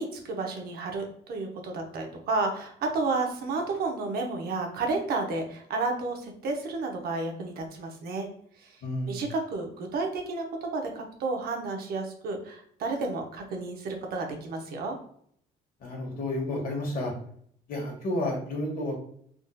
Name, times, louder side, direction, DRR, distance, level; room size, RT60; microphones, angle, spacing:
voice 1, 0.0-8.3 8.6-8.7 9.1-15.0, right 3 dB, 65° right, 3 dB, 0.8 m, -31 dB
voice 2, 8.8-9.2 15.8-17.1 17.7-19.0, left 1 dB, 55° left, 0 dB, 1.3 m, -31 dB
3.6 x 2.7 x 2.2 m, 0.64 s
cardioid pair, 110°, 17 cm